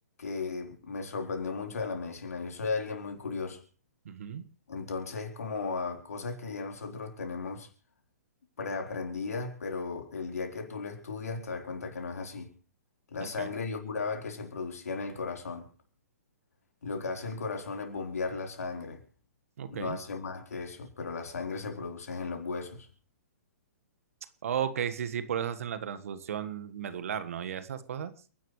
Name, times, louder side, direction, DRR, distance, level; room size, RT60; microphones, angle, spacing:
voice 1, 0.2-3.6 4.7-7.7 8.6-12.5 13.1-15.7 16.8-19.0 19.7-22.9, left 4 dB, 75° left, 4.2 m, -36 dB
voice 2, 4.0-4.4 13.2-13.5 19.6-20.0 24.4-28.1, right 8 dB, 65° right, 1.6 m, -34 dB
29.5 x 10.5 x 3.2 m
hypercardioid pair, 125°, 8 cm